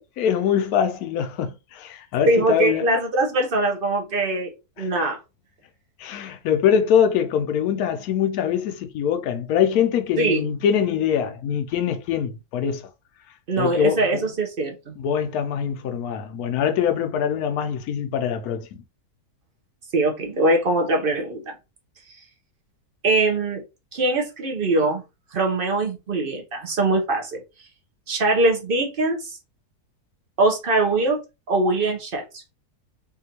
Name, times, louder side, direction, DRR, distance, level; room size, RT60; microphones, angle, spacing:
voice 1, 0.2-2.9 4.8-4.9 6.0-12.8 13.6-14.3 15.0-18.7, left 8 dB, 75° left, 1.1 m, -23 dB
voice 2, 2.3-4.5 4.8-5.2 10.2-10.5 13.5-14.9 19.9-21.5 23.0-23.6 23.9-25.0 25.3-27.4 28.1-29.4 30.4-31.2 31.5-32.5, right 2 dB, 45° right, 0.9 m, -22 dB
3.6 x 2.7 x 2.8 m
omnidirectional pair, 1.6 m